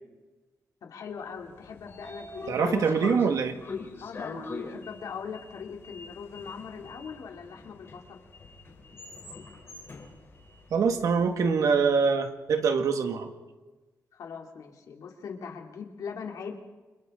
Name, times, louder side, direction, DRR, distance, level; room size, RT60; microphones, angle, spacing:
voice 1, 0.8-3.0 4.0-8.2 14.1-16.6, left 6 dB, 85° left, 1 dB, 3.2 m, -41 dB
Sliding door, 1.4-11.6, left 4 dB, 45° left, 4.1 m, -42 dB
voice 2, 2.5-3.5 10.7-13.3, right 5 dB, 75° right, 5 dB, 2.0 m, -24 dB
29.5 x 27.5 x 3.9 m, 1.2 s
wide cardioid pair, 180°, 6 cm